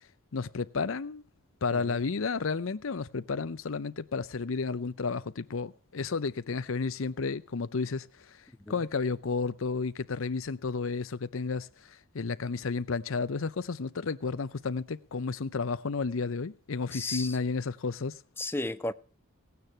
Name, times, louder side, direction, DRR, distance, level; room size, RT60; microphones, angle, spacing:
voice 1, 0.3-1.2 1.6-8.4 8.7-18.2, left 4 dB, 70° left, 0.6 m, -32 dB
voice 2, 16.9-17.4 18.4-18.9, left 2 dB, 10° left, 0.6 m, -33 dB
17.0 x 9.5 x 5.6 m
head